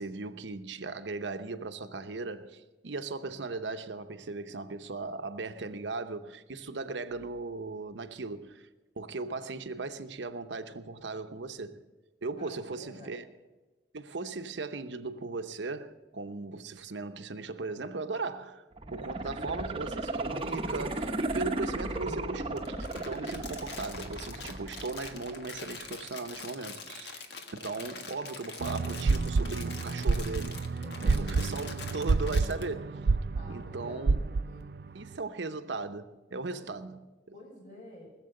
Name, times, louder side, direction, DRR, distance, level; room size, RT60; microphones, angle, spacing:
voice 1, 0.0-8.7 9.0-11.8 12.2-13.2 13.9-18.6 18.9-27.2 27.5-33.0 33.5-34.2 34.9-37.3, right 3 dB, 90° right, 0.8 m, -38 dB
voice 2, 12.4-13.2 19.0-19.8 30.8-31.5 33.3-34.6 34.9-35.1 36.5-36.7 37.3-38.2, left 1 dB, 45° left, 5.7 m, -50 dB
sound 1, 18.7-25.7 26.1-26.2, right 2 dB, 30° right, 0.9 m, -35 dB
Crumpling crinkling, 22.6-32.6, left 4 dB, 70° left, 1.5 m, -44 dB
sound 2, 28.6-35.2, right 3 dB, 60° right, 0.4 m, -29 dB
19.5 x 7.5 x 7.7 m
head